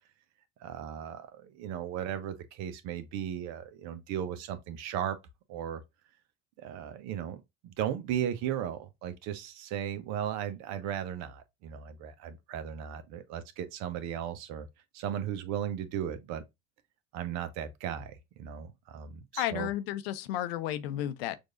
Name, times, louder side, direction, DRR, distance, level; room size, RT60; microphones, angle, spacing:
voice 1, 0.6-5.2 5.5-5.8 6.6-14.7 14.9-16.4 17.1-19.7, right 10 dB, 60° right, 0.9 m, -36 dB
voice 2, 19.4-21.4, left 12 dB, 75° left, 0.7 m, -32 dB
6.2 x 2.6 x 2.5 m
hypercardioid pair, 65°, 30 cm